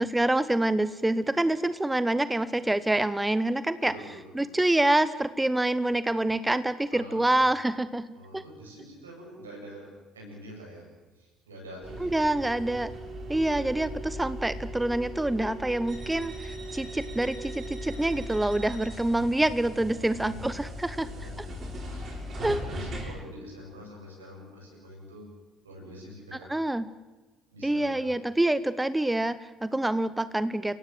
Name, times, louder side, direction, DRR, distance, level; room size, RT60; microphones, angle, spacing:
voice 1, 0.0-3.9 4.3-8.0 8.3-8.4 12.0-12.9 13.3-21.1 22.4-22.6 26.3-26.9 27.6-30.8, right 1 dB, 10° right, 15 dB, 1.1 m, -26 dB
voice 2, 3.8-4.4 6.9-7.2 8.1-10.9 11.2-12.2 13.3-13.8 18.9-20.6 20.9-22.2 22.4-25.3 25.6-26.5 27.5-28.1, equal, 85° right, -1 dB, 7.9 m, -46 dB
sound 1, 11.8-23.1, equal, 45° right, 7.6 m, -38 dB
29.5 x 16.5 x 8.0 m, 1.2 s
figure-of-eight pair, 55°, 0 cm